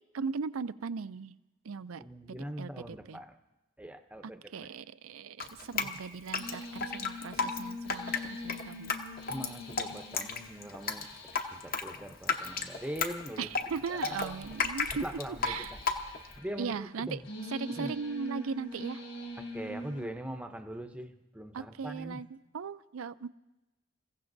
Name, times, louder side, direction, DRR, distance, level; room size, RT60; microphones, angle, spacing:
voice 1, 0.1-1.3 1.6-2.0 2.6-3.2 4.5-8.9 13.4-15.1 15.5-15.7 16.6-17.2 17.5-19.0 21.5-22.3 22.5-23.3, right 5 dB, 85° right, 15 dB, 0.5 m, -38 dB
voice 2, 2.0-3.4 3.8-4.8 5.8-5.9 9.3-11.1 11.5-13.5 13.9-14.5 15.0-17.3 17.8-17.9 19.4-22.2, right 1 dB, 5° right, 6 dB, 0.6 m, -42 dB
Drip, 5.4-16.4, left 5 dB, 45° left, 0.9 m, -34 dB
sound 1, 6.4-20.1, left 1 dB, 70° left, 6.6 m, -45 dB
28.5 x 15.5 x 2.6 m, 1.1 s
head